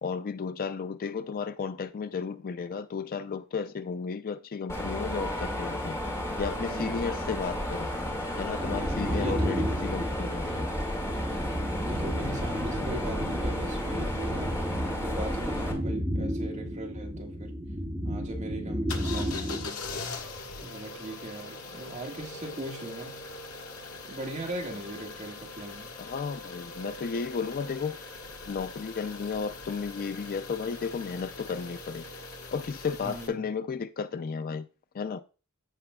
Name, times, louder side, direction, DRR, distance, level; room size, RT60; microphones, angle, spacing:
voice 1, 0.0-6.0 6.4-7.9 8.4-10.7 26.0-28.0 28.5-32.1 32.5-34.7 34.9-35.2, left 5 dB, 40° left, 0.4 m, -33 dB
Mechanisms, 4.7-15.7, left 1 dB, 15° left, 2.0 m, -33 dB
voice 2, 6.5-7.0 9.1-9.7 11.5-14.6 15.0-17.5 18.0-19.8 20.6-23.3 24.1-25.9 33.0-33.5, right 1 dB, 35° right, 1.6 m, -39 dB
sound 1, 8.6-19.7, equal, 15° right, 1.9 m, -33 dB
sound 2, 18.9-33.3, left 3 dB, 75° left, 1.4 m, -41 dB
14.5 x 4.9 x 2.3 m
head